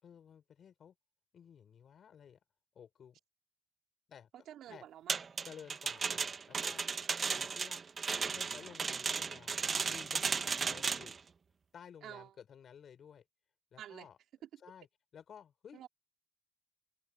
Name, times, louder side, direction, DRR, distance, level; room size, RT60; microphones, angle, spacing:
voice 1, 0.0-0.9 1.3-2.4 2.7-3.2 4.1-4.3 4.7-4.8 5.4-6.2 6.5-6.9 7.3-7.8 8.2-9.5 9.8-11.2 11.7-13.2 13.7-14.2 14.6-14.9 15.1-15.8, left 8 dB, 65° left, 6.1 m, -54 dB
voice 2, 4.3-5.5 12.0-12.3 13.8-14.1 14.4-14.6 15.7-15.9, right 11 dB, 75° right, 3.3 m, -50 dB
sound 1, 5.1-11.2, right 5 dB, 50° right, 1.3 m, -35 dB
supercardioid pair, 55°, 0 cm